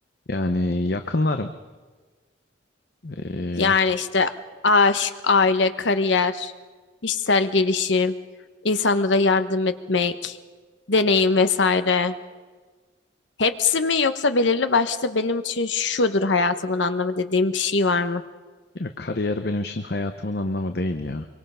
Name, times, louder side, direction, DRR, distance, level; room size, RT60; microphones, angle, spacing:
voice 1, 0.3-1.5 3.0-3.7 18.7-21.3, left 2 dB, 55° left, 7 dB, 0.8 m, -26 dB
voice 2, 3.6-4.3 4.6-6.5 7.0-8.1 8.6-10.4 10.9-12.1 13.4-18.2, left 4 dB, 75° left, 10 dB, 1.1 m, -21 dB
25.0 x 23.5 x 5.6 m, 1.4 s
head